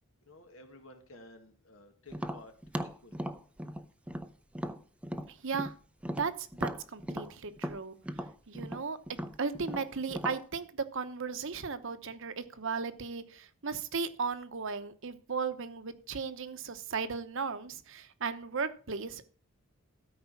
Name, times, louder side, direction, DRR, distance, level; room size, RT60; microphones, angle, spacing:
voice 1, 0.2-2.5 2.8-3.2, left 2 dB, 75° left, 5 dB, 2.1 m, -54 dB
Tap, 2.1-5.7 6.0-10.4, equal, 5° right, 0.6 m, -38 dB
voice 2, 5.3-5.7 6.2-8.0 8.5-19.3, right 5 dB, 65° right, 11 dB, 0.9 m, -36 dB
13.0 x 4.9 x 7.1 m, 0.42 s
head